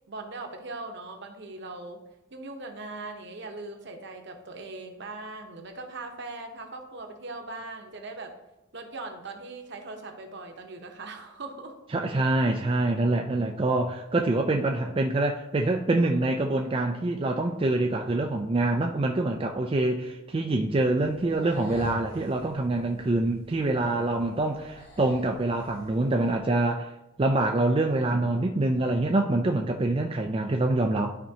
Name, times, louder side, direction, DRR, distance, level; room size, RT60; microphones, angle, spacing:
voice 1, 0.1-2.0 2.3-8.3 8.7-11.8, right 3 dB, 60° right, 4 dB, 1.0 m, -40 dB
voice 2, 11.9-26.9 27.2-31.2, right 2 dB, 25° right, 2 dB, 0.4 m, -25 dB
sound 1, 21.0-26.4, equal, 50° left, 1.7 m, -45 dB
12.0 x 4.4 x 2.8 m, 0.98 s
head